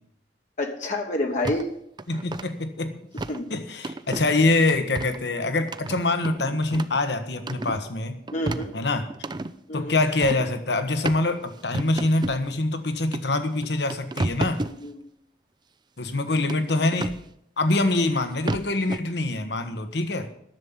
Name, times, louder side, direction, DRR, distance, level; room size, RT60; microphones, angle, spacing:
voice 1, 0.6-1.7 3.3-3.4 8.3-8.7 9.7-10.0 14.8-15.1, left 1 dB, 45° left, 2 dB, 1.2 m, -28 dB
sound 1, 1.4-1.7 2.0-2.5 3.2-3.4 3.8-4.3 4.7-5.2 5.7-7.0 7.4-7.9 8.3-9.5 10.2-10.5 11.1-11.2 11.7-12.4 13.1-13.2 13.6-14.8 16.5-17.2 18.2-18.3 18.5-19.0, right 2 dB, 25° right, 0.5 m, -31 dB
voice 2, 2.1-3.0 3.5-8.2 8.7-9.1 9.7-14.6 16.0-17.1 17.6-20.3, left 2 dB, 70° left, 9 dB, 1.3 m, -24 dB
10.5 x 7.2 x 9.5 m, 0.72 s
head